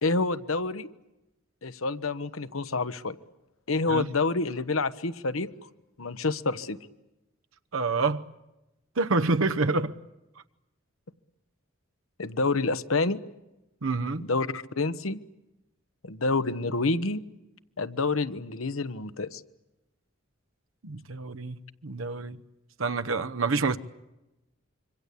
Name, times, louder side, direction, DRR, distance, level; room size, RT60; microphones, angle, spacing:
voice 1, 0.0-0.9 1.6-3.2 3.7-5.5 6.0-6.8 12.2-13.2 14.2-15.2 16.0-17.2 17.8-19.4, left 3 dB, 85° left, 1.1 m, -28 dB
voice 2, 7.7-8.2 9.0-10.0 13.8-14.3 20.8-21.6 21.8-22.4 22.8-23.8, right 3 dB, 80° right, 1.0 m, -27 dB
26.0 x 24.0 x 8.4 m
head